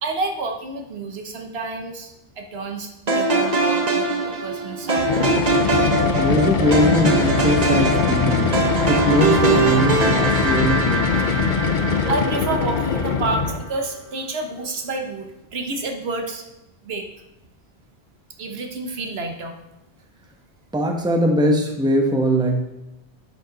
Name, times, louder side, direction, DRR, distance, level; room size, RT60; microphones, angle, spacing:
voice 1, 0.0-5.4 11.1-11.3 12.1-16.4 16.8-17.1 18.4-19.5, right 3 dB, 75° right, 4 dB, 1.2 m, -29 dB
sound 1, 3.1-13.3, right 3 dB, 40° right, 1.2 m, -22 dB
sound 2, 5.0-13.7, left 6 dB, 55° left, 0.7 m, -22 dB
voice 2, 6.2-8.6 8.9-11.0 20.7-22.6, equal, 5° right, 2 dB, 0.9 m, -21 dB
9.7 x 5.3 x 3.9 m, 0.90 s
omnidirectional pair, 1.1 m